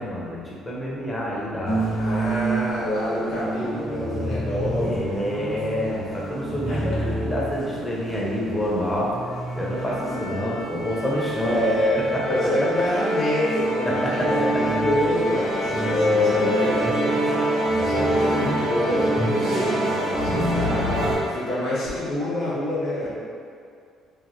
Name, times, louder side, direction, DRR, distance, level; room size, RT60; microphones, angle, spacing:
voice 1, 0.0-1.9 4.8-9.1 9.6-11.6 12.1-12.2 13.9-14.6 15.8-16.7 20.1-20.8 23.0-23.1, left 1 dB, 15° left, -5 dB, 0.7 m, -27 dB
sound 1, 1.6-21.2, right 1 dB, 85° right, 0.9 m, -26 dB
voice 2, 2.0-5.2 6.7-6.8 10.0-10.5 11.5-17.1 17.7-23.1, left 1 dB, 70° left, -9 dB, 1.3 m, -27 dB
3.3 x 2.1 x 2.5 m, 2.3 s
cardioid pair, 100°, 0 cm